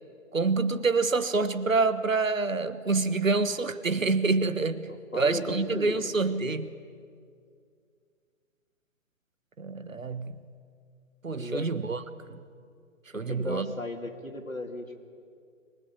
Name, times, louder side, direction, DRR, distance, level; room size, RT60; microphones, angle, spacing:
voice 1, 0.3-6.7 9.6-10.4 11.2-12.0 12.3-12.4 13.1-13.7, right 3 dB, 75° right, 14 dB, 1.4 m, -27 dB
voice 2, 4.9-6.1 11.3-11.7 13.1-15.0, left 1 dB, 90° left, 4 dB, 2.9 m, -36 dB
24.5 x 20.0 x 8.6 m, 2.3 s
figure-of-eight pair, 130°, 40 cm